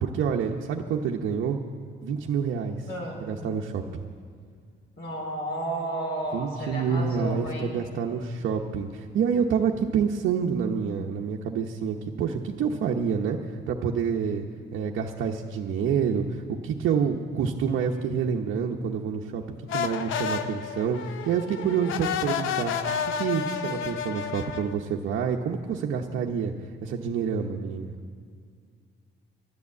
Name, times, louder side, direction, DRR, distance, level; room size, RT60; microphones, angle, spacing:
voice 1, 0.0-1.6 2.0-2.9 3.2-4.0 6.3-14.4 14.7-22.7 23.2-26.5 26.8-28.0, right 6 dB, 75° right, 0 dB, 0.9 m, -28 dB
voice 2, 2.9-3.3 5.0-7.8, right 1 dB, 60° left, -1 dB, 4.5 m, -32 dB
sound 1, 19.7-24.7, left 7 dB, 90° left, 0.7 m, -31 dB
11.5 x 11.0 x 8.4 m, 2.1 s
cardioid pair, 90°, 20 cm